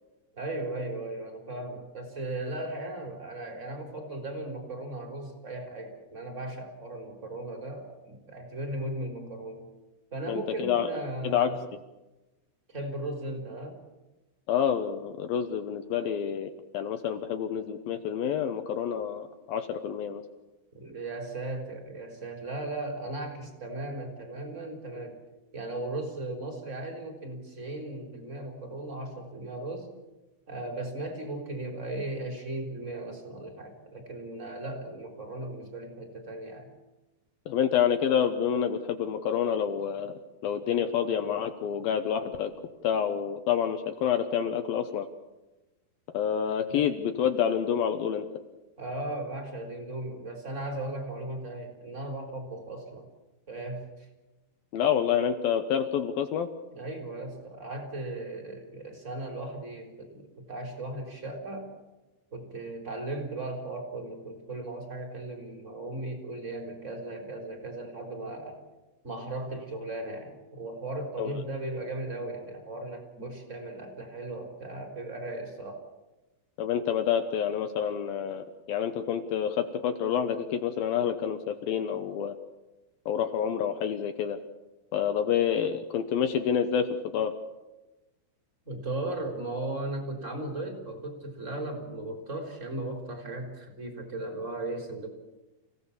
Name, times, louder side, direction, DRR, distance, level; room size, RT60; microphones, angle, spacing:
voice 1, 0.3-9.7 10.1-11.6 12.7-13.8 20.7-25.2 25.5-29.9 30.5-36.7 46.7-46.8 48.8-53.1 53.5-54.1 56.7-61.7 62.3-68.6 69.0-75.8 88.7-95.1, right 2 dB, 20° right, 2 dB, 3.6 m, -37 dB
voice 2, 10.3-11.0 11.2-11.5 14.5-20.2 37.5-42.5 42.8-45.1 46.1-48.3 54.7-56.5 71.2-71.4 76.6-82.4 83.1-84.4 84.9-87.3, left 8 dB, 70° left, 7 dB, 2.5 m, -28 dB
28.5 x 16.5 x 7.2 m, 1.1 s
omnidirectional pair, 4.9 m